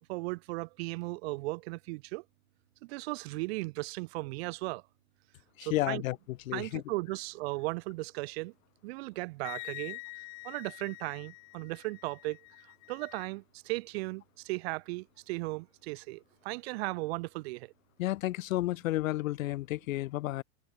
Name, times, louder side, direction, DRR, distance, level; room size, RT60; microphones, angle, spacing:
voice 1, 0.1-2.2 2.8-4.8 5.6-6.0 6.5-8.5 8.8-10.0 10.4-12.4 12.9-17.7, right 23 dB, 45° right, 1.6 m, -36 dB
voice 2, 5.6-6.2 6.5-6.8 18.0-20.4, left 16 dB, 65° left, 1.1 m, -31 dB
Wind instrument woodwind instrument, 9.4-13.3, left 40 dB or more, 40° left, 2.2 m, -46 dB
supercardioid pair, 160°, 43 cm